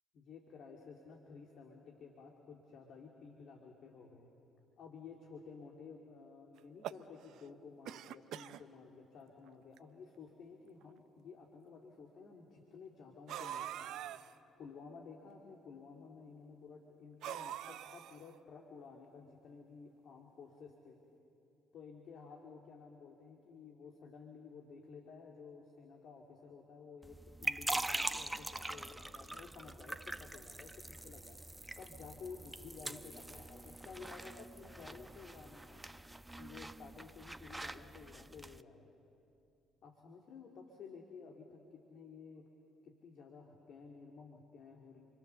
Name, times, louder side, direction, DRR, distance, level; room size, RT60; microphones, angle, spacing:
voice 1, 0.1-4.3 4.8-14.0 14.6-21.0 21.7-35.8 36.4-38.9 39.8-42.5 42.8-45.0, left 5 dB, 60° left, 1 dB, 2.4 m, -53 dB
sound 1, 6.6-7.5 7.8-8.6 9.4-9.5 9.8-9.9 10.8-10.9 13.3-14.3 17.2-18.3, right 11 dB, 65° right, 0.6 m, -44 dB
sound 2, 27.0-38.6, right 1 dB, 10° right, 0.8 m, -43 dB
29.5 x 23.5 x 6.9 m, 2.7 s
hypercardioid pair, 50°, 0 cm